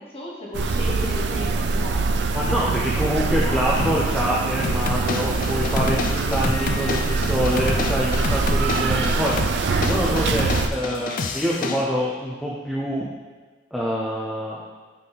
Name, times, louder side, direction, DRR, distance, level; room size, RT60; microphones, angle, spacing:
voice 1, 0.0-2.7 3.2-4.0 4.6-6.6, left 1 dB, 35° left, -3 dB, 1.2 m, -36 dB
sound 1, 0.5-10.7, right 3 dB, 80° right, 0.4 m, -23 dB
voice 2, 2.3-9.3 9.8-13.1 13.7-14.6, equal, ahead, -7 dB, 0.5 m, -25 dB
sound 2, 3.6-4.2 4.9-5.2 5.6-5.7 6.5-7.6 8.2-8.5 8.8-9.2 9.6-9.9 10.2-10.3 10.8-11.6, left 1 dB, 70° left, 1.3 m, -36 dB
sound 3, 4.6-11.8, left 3 dB, 50° left, 0.4 m, -29 dB
7.5 x 3.6 x 4.0 m, 1.4 s
head